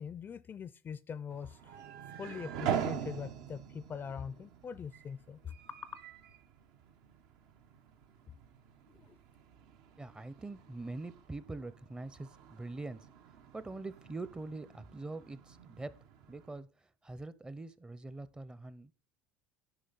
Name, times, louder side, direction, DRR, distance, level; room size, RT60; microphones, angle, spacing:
voice 1, 0.0-1.8 2.2-6.0 8.9-9.2, left 7 dB, 35° left, 0.4 m, -43 dB
sound 1, 1.3-16.6, right 8 dB, 75° right, 0.9 m, -44 dB
voice 2, 10.0-13.0 13.5-15.9 16.3-16.7 17.0-18.9, right 2 dB, 15° right, 0.6 m, -43 dB
10.0 x 5.4 x 4.0 m
supercardioid pair, 95°, 6 cm